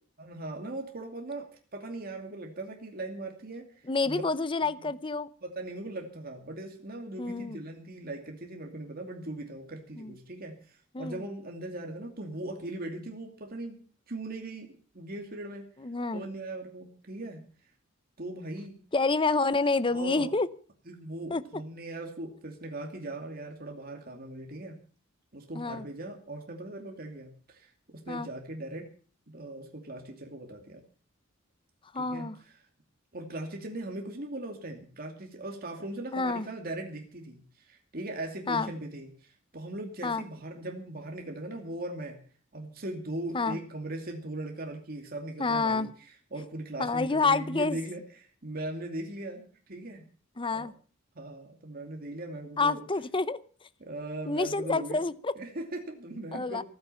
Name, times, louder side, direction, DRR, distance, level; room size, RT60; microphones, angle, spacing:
voice 1, 0.2-3.8 4.1-4.2 5.4-13.8 14.1-14.7 14.9-15.7 16.1-17.4 18.2-18.8 19.9-20.3 20.9-24.8 25.3-28.9 29.3-30.8 31.9-32.5 33.1-42.2 42.5-45.9 46.3-50.1 50.5-50.7 51.1-52.9 53.8-55.0 55.4-56.6, right 2 dB, 50° right, 3 dB, 2.6 m, -39 dB
voice 2, 3.9-5.3 7.2-7.6 10.0-10.1 10.9-11.2 15.8-16.2 18.9-20.5 21.3-21.4 25.5-25.8 28.1-28.3 31.9-32.4 36.1-36.5 38.5-38.7 40.0-40.2 43.3-43.6 45.4-45.9 46.8-47.8 50.4-50.7 52.6-53.4 54.3-55.3 56.3-56.6, left 3 dB, 25° left, 16 dB, 0.7 m, -28 dB
14.5 x 14.5 x 5.7 m, 0.42 s
head